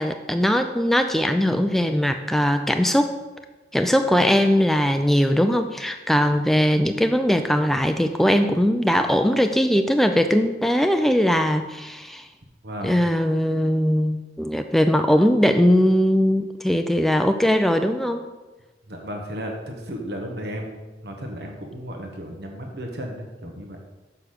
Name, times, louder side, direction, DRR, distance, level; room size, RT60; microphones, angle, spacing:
voice 1, 0.0-3.2 3.7-12.3 12.8-18.2, equal, ahead, 6 dB, 0.4 m, -20 dB
voice 2, 12.6-13.0 18.9-23.8, equal, 70° right, 2 dB, 1.1 m, -34 dB
6.9 x 5.8 x 6.4 m, 1.2 s
head